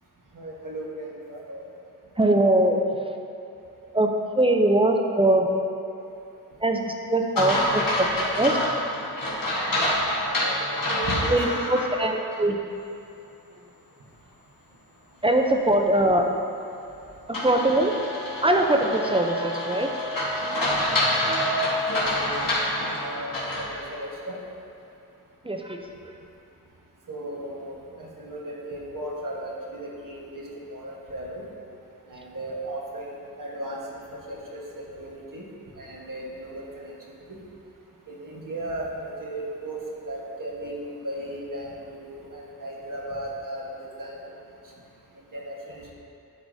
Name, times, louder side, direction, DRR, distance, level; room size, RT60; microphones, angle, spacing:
voice 1, 0.3-1.7 10.2-11.7 20.8-21.0 21.9-24.4 27.1-31.5 32.1-33.1 33.4-35.5 35.8-36.9 37.3-37.4 38.1-44.1 45.3-45.9, right 1 dB, 55° right, -3 dB, 1.3 m, -36 dB
voice 2, 2.2-2.8 3.9-4.1 4.4-5.5 6.6-8.1 8.4-8.6 11.3-12.6 15.2-16.3 17.3-18.0 18.4-19.9 25.4-25.8 26.0-26.1, right 1 dB, 15° right, 3 dB, 0.5 m, -22 dB
sound 1, 7.4-11.9 12.3-12.4 17.3-23.7, left 1 dB, 60° left, 1.6 m, -27 dB
Wind instrument woodwind instrument, 18.4-22.1, right 2 dB, 85° right, 0.5 m, -35 dB
11.5 x 4.7 x 2.7 m, 2.7 s
wide cardioid pair, 80°, 38 cm